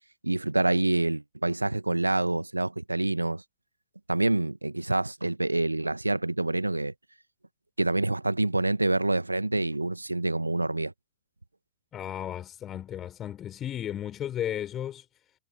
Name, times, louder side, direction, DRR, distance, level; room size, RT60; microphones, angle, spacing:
voice 1, 0.2-3.4 4.1-6.9 7.8-10.9, right 2 dB, 85° right, 1.4 m, -27 dB
voice 2, 11.9-15.1, left 11 dB, 30° left, 4.5 m, -34 dB
figure-of-eight pair, 90°, 0 cm